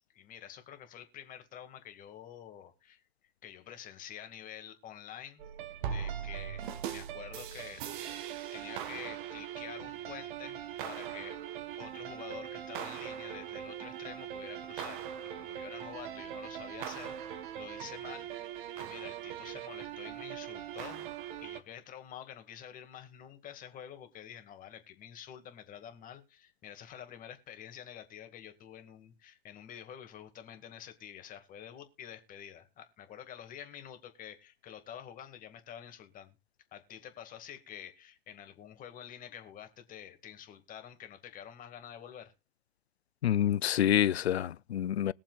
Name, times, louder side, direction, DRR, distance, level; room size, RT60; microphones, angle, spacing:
voice 1, 0.1-3.0 3.4-5.4 5.8-7.8 8.5-11.4 11.8-15.1 15.3-18.3 18.8-21.1 21.4-36.3 36.7-42.3, left 9 dB, 25° left, 2.1 m, -48 dB
sound 1, 5.4-21.6, right 9 dB, 50° right, 1.5 m, -40 dB
voice 2, 43.2-45.1, left 10 dB, 90° left, 0.5 m, -27 dB
21.5 x 7.4 x 2.4 m
hypercardioid pair, 120°, 31 cm